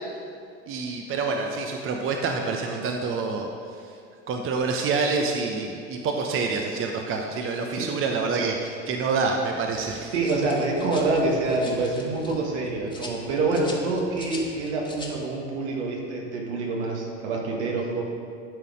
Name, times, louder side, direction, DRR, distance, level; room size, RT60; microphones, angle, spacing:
voice 1, 0.7-3.5 4.3-10.1, right 4 dB, 35° right, 2 dB, 0.8 m, -27 dB
sound 1, 9.7-15.3, left 2 dB, 15° left, 1.5 m, -43 dB
voice 2, 10.1-18.0, right 3 dB, 75° right, -1 dB, 1.7 m, -26 dB
11.5 x 4.1 x 5.0 m, 2.4 s
hypercardioid pair, 80°, 35 cm